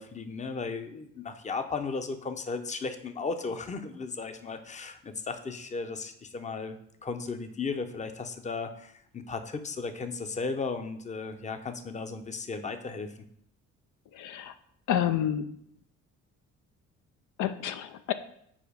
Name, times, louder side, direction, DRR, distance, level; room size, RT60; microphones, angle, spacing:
voice 1, 0.0-6.8 7.0-13.1, left 4 dB, 25° left, 8 dB, 0.6 m, -35 dB
voice 2, 14.2-14.5 14.9-15.5 17.4-18.1, left 10 dB, 80° left, 10 dB, 0.5 m, -29 dB
5.0 x 4.5 x 5.0 m, 0.71 s
cardioid pair, 90°, 30 cm